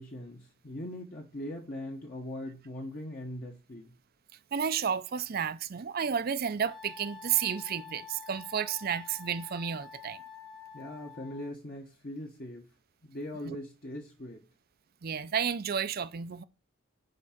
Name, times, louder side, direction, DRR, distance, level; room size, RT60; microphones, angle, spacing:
voice 1, 0.0-3.9 10.7-12.6 13.0-14.4, left 1 dB, 45° left, 1.2 m, -41 dB
voice 2, 4.5-10.2 13.4-13.6 15.0-16.4, right 7 dB, 45° right, 0.5 m, -32 dB
Wind instrument woodwind instrument, 6.7-11.5, left 6 dB, 5° left, 1.0 m, -48 dB
10.5 x 3.7 x 5.8 m
head